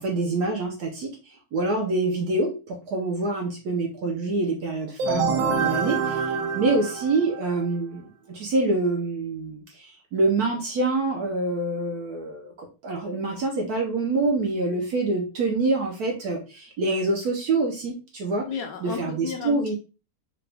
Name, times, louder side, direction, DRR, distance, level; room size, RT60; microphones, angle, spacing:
voice 1, 0.0-18.5 18.8-19.8, right 2 dB, 65° right, 1 dB, 1.0 m, -26 dB
sound 1, 5.0-7.7, right 5 dB, 80° right, 1.4 m, -26 dB
voice 2, 18.5-19.8, left 7 dB, 70° left, 4 dB, 1.2 m, -34 dB
3.9 x 2.3 x 3.2 m, 0.31 s
omnidirectional pair, 2.1 m